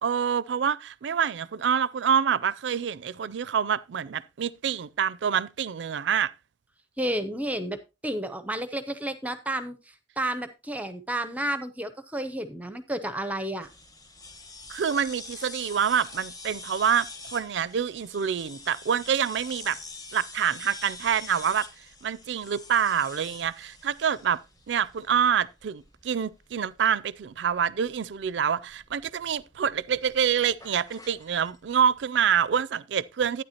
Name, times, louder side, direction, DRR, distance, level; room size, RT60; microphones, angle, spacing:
voice 1, 0.0-6.3 14.7-19.8 20.1-21.7 22.0-24.4 24.7-33.4, right 8 dB, 70° right, 0.4 m, -26 dB
voice 2, 7.0-7.8 8.0-13.7, right 1 dB, 10° right, 0.6 m, -31 dB
sound 1, 13.6-31.7, left 3 dB, 20° left, 1.3 m, -45 dB
11.5 x 9.5 x 2.8 m
head